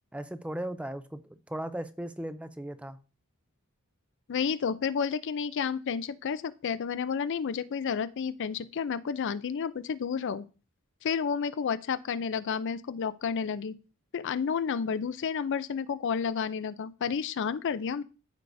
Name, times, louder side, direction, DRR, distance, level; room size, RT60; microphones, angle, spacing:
voice 1, 0.1-3.0, right 1 dB, 5° right, 0.4 m, -37 dB
voice 2, 4.3-10.4 11.0-13.8 14.1-18.0, left 6 dB, 60° left, 0.4 m, -31 dB
13.5 x 4.6 x 2.6 m
head